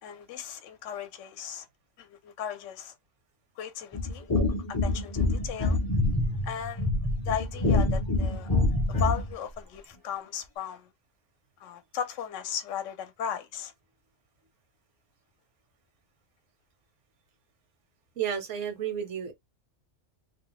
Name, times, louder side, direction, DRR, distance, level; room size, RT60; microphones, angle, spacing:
voice 1, 0.0-1.7 2.0-2.9 3.6-4.3 4.7-5.8 6.4-6.9 7.3-8.5 8.9-10.9 11.6-13.7, left 8 dB, 80° left, 0.9 m, -36 dB
sound 1, 3.9-9.3, left 2 dB, 30° left, 0.4 m, -26 dB
voice 2, 18.2-19.3, right 9 dB, 70° right, 1.2 m, -32 dB
2.7 x 2.0 x 3.9 m
omnidirectional pair, 1.3 m